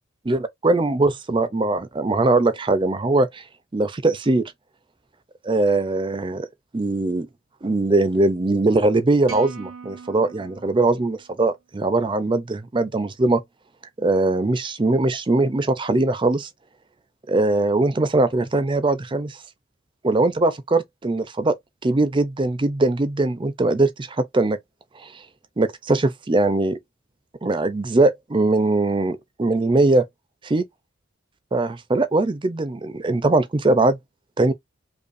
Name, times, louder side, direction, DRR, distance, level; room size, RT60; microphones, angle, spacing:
voice 1, 0.2-3.4 3.7-4.4 5.4-6.5 6.7-7.3 7.6-13.4 14.0-16.5 17.3-19.4 20.0-21.6 21.8-24.6 25.0-25.2 25.6-26.8 27.4-30.1 30.4-30.6 31.5-34.0 34.4-34.5, right 2 dB, 25° right, 0.5 m, -21 dB
sound 1, 9.3-11.6, right 6 dB, 75° right, 0.9 m, -41 dB
5.2 x 2.3 x 2.5 m
head